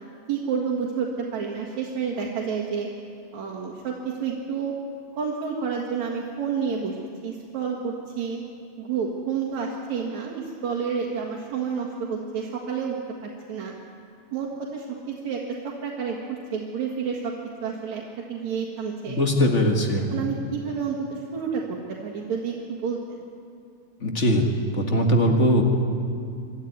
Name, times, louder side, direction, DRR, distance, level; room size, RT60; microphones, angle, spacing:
voice 1, 0.3-2.9 3.3-4.7 5.2-7.0 7.2-8.4 8.8-13.0 13.2-13.7 14.3-17.3 17.6-18.0 18.3-19.2 20.1-21.6 22.0-23.3, right 6 dB, 75° right, -2 dB, 3.1 m, -29 dB
voice 2, 19.1-20.1 24.0-24.5 24.7-25.6, equal, 30° left, 2 dB, 1.8 m, -21 dB
25.0 x 13.5 x 9.6 m, 2.4 s
omnidirectional pair, 3.3 m